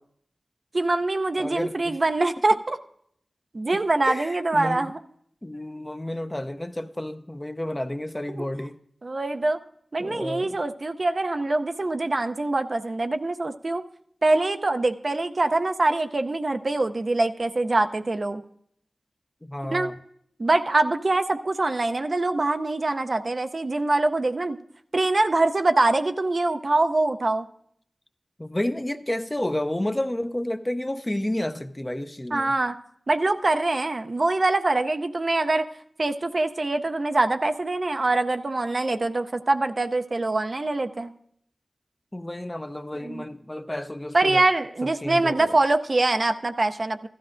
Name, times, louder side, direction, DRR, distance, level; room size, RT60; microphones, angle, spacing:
voice 1, 0.7-2.8 3.5-5.0 8.3-8.5 9.0-9.6 9.9-13.8 14.2-18.4 19.6-19.9 20.4-24.6 24.9-27.5 32.3-32.7 33.1-35.7 36.0-41.1 43.0-43.2 44.1-47.1, right 2 dB, 55° right, 0.5 m, -24 dB
voice 2, 1.4-2.0 4.1-4.9 5.4-8.8 10.0-10.6 19.4-20.0 28.4-32.5 42.1-44.4 44.8-45.6, left 1 dB, 20° left, 0.5 m, -31 dB
15.0 x 12.5 x 2.5 m
wide cardioid pair, 50°, 0 cm